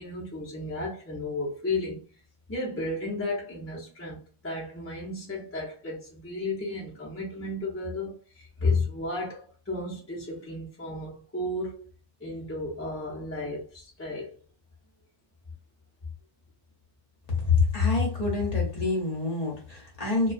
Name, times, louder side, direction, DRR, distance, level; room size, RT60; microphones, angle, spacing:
voice 1, 0.0-2.0 2.5-11.9 12.2-14.4, left 2 dB, 20° left, 0.4 m, -33 dB
voice 2, 17.4-20.3, left 4 dB, 40° left, 0.7 m, -26 dB
2.2 x 2.2 x 2.4 m
omnidirectional pair, 1.3 m